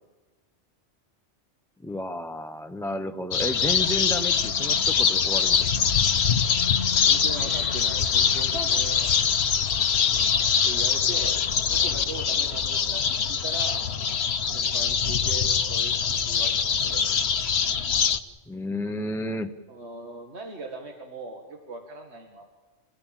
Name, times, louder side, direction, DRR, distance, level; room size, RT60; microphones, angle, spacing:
voice 1, 1.8-5.7 18.5-19.6, left 1 dB, 5° left, 7 dB, 0.6 m, -32 dB
sound 1, 3.3-18.2, left 7 dB, 65° left, 1.2 m, -23 dB
voice 2, 7.0-9.1 10.6-11.4 11.7-13.0 13.3-13.8 14.5-16.5 16.8-17.1 19.7-22.4, right 2 dB, 70° right, 2 dB, 2.3 m, -39 dB
27.5 x 15.5 x 9.0 m, 1.3 s
omnidirectional pair, 1.2 m